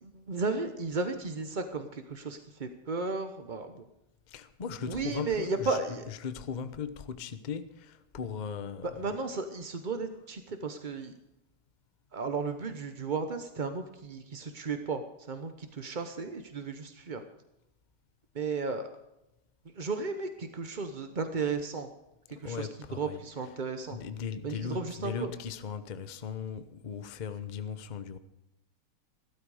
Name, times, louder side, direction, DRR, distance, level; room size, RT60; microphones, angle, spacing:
voice 1, 0.0-3.9 4.9-6.0 9.0-11.1 12.1-15.0 15.3-17.2 18.3-18.9 19.7-21.9 22.4-24.0 24.4-25.3, right 4 dB, 45° right, 0.6 m, -34 dB
voice 2, 4.3-9.1 22.3-23.2 23.9-28.2, left 7 dB, 60° left, 0.4 m, -38 dB
15.5 x 13.0 x 4.9 m
omnidirectional pair, 2.3 m